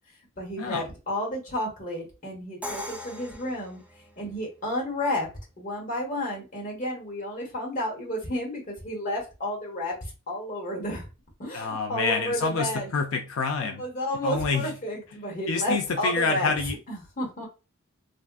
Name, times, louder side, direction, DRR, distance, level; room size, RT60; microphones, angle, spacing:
voice 1, 0.4-3.8 4.2-5.3 5.6-11.1 11.4-12.9 13.6-16.5 16.9-17.4, left 1 dB, 40° left, -1 dB, 1.3 m, -31 dB
Crash cymbal, 2.6-4.5, left 1 dB, 5° right, 0.4 m, -39 dB
voice 2, 11.5-13.8 14.2-14.7 15.5-16.8, left 4 dB, 90° left, 4 dB, 0.5 m, -27 dB
3.5 x 2.5 x 2.3 m, 0.30 s
head